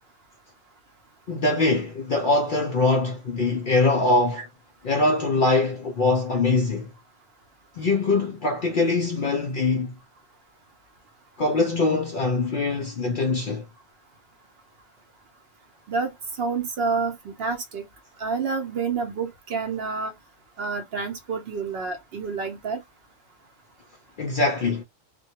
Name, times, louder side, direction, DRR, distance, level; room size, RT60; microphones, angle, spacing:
voice 1, 1.3-4.4 4.8-6.9 7.8-9.9 11.4-13.6 24.2-24.8, left 3 dB, 60° left, 0.5 m, -23 dB
voice 2, 16.4-17.8 18.2-20.1 20.6-22.8, right 4 dB, 60° right, 0.7 m, -28 dB
2.2 x 2.1 x 2.8 m
omnidirectional pair, 1.3 m